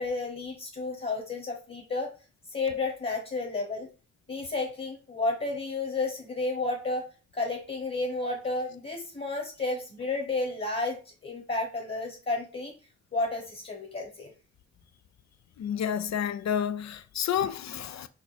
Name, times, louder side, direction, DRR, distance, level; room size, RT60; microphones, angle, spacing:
voice 1, 0.0-2.1 2.5-3.9 4.3-7.1 7.3-12.7 13.1-14.3, left 3 dB, 35° left, 1.2 m, -32 dB
voice 2, 15.6-18.1, left 9 dB, 65° left, 0.4 m, -30 dB
4.4 x 2.5 x 4.2 m
cardioid pair, 55°, 29 cm